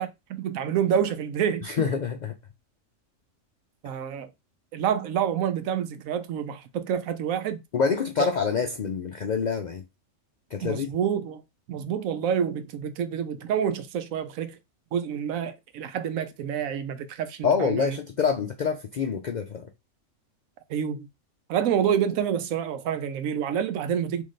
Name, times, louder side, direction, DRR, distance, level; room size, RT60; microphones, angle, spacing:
voice 1, 0.0-1.9 3.8-4.3 4.7-7.6 8.2-8.3 10.6-11.4 11.7-14.6 14.9-18.0 20.7-21.1 21.5-24.2, right 8 dB, 85° right, 1.0 m, -28 dB
voice 2, 1.6-2.3 7.7-9.8 10.5-10.9 17.4-19.7, left 6 dB, 70° left, 0.4 m, -26 dB
3.2 x 2.9 x 3.9 m
omnidirectional pair, 1.4 m